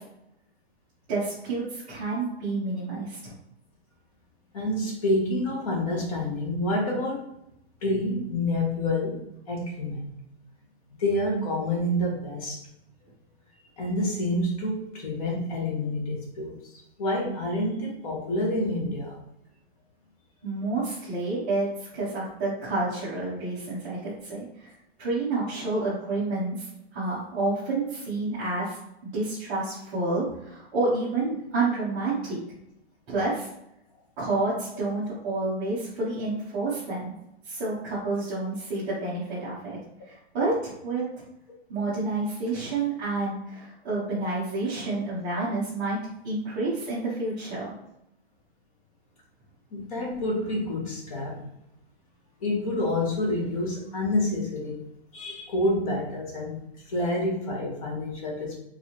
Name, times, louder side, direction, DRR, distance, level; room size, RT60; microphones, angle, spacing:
voice 1, 1.1-3.3 20.4-24.7 25.0-26.6 26.9-28.8 29.0-32.4 33.1-33.5 34.2-37.1 37.4-39.8 40.1-41.0 41.7-46.0 46.2-47.7, right 2 dB, 15° right, -11 dB, 0.9 m, -29 dB
voice 2, 4.5-7.2 7.8-10.0 11.0-12.6 13.8-16.6 17.0-19.1 49.7-51.5 52.4-54.8 55.1-56.6 56.9-58.6, left 1 dB, 30° left, -1 dB, 1.3 m, -28 dB
4.8 x 2.9 x 2.9 m, 0.80 s
hypercardioid pair, 170°, 33 cm